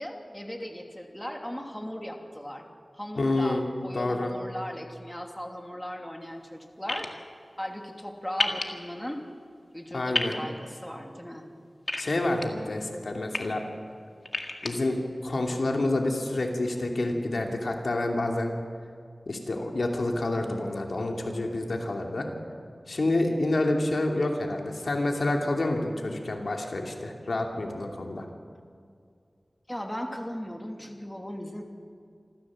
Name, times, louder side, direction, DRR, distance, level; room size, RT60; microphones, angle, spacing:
voice 1, 0.0-2.7 2.9-7.1 7.6-9.2 9.7-11.5 29.7-31.6, equal, 10° left, 3 dB, 2.8 m, -37 dB
voice 2, 3.2-3.6 3.9-4.3 9.9-10.4 12.0-13.6 14.6-18.5 19.3-22.3 22.9-28.3, left 2 dB, 80° left, 2 dB, 2.6 m, -28 dB
sound 1, 6.9-7.1 8.4-8.6 10.1-10.3 11.9-12.5 13.1-13.4 14.3-14.7, left 2 dB, 55° left, 2.0 m, -28 dB
26.5 x 14.5 x 7.5 m, 2.3 s
wide cardioid pair, 60°, 0 cm